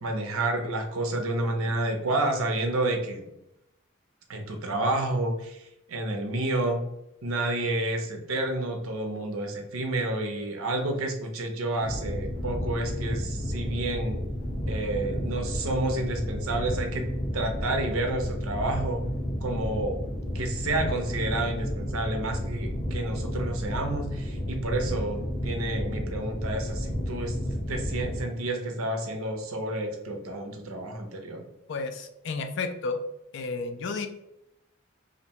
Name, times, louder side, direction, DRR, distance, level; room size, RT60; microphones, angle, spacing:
voice 1, 0.0-3.2 4.3-6.8 7.2-14.2 14.7-17.1 17.3-19.0 19.4-20.0 20.3-31.4, right 2 dB, 85° right, 4 dB, 0.6 m, -30 dB
sound 1, 11.8-28.2, equal, 20° left, 1.1 m, -32 dB
voice 2, 31.7-33.0 33.3-34.1, left 4 dB, 55° left, 7 dB, 0.3 m, -32 dB
2.5 x 2.1 x 2.8 m, 0.85 s
head